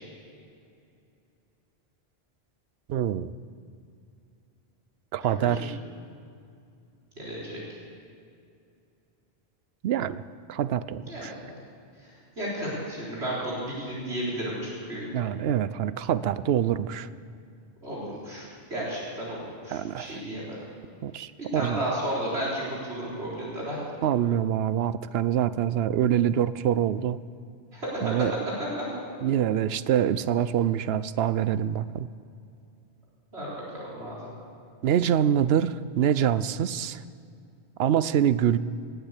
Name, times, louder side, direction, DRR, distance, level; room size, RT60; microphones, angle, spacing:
voice 1, 2.9-3.3 5.1-5.8 9.8-10.2 10.5-11.3 15.1-17.1 19.7-20.2 21.0-21.9 24.0-27.2 28.0-28.3 29.2-32.1 34.8-37.0 37.8-38.6, right 10 dB, 75° right, 16 dB, 0.8 m, -25 dB
voice 2, 5.4-5.7 7.2-7.6 11.0-11.4 12.4-15.0 17.8-20.6 21.4-23.8 27.7-28.9 33.3-34.2, right 1 dB, 90° right, -6 dB, 4.3 m, -33 dB
18.5 x 9.3 x 8.3 m, 2.5 s
omnidirectional pair, 1.1 m